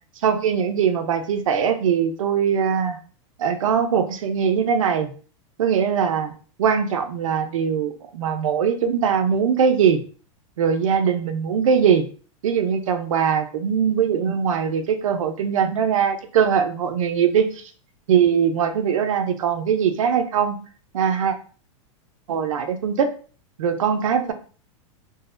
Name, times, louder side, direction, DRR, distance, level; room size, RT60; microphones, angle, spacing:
voice 1, 0.2-3.0 3.4-5.1 5.6-6.3 6.6-10.0 10.6-12.0 12.4-17.6 18.1-20.6 20.9-21.3 22.3-23.1 23.6-24.3, right 7 dB, 90° right, 7 dB, 0.6 m, -21 dB
3.9 x 2.1 x 2.5 m, 0.39 s
supercardioid pair, 135°, 17 cm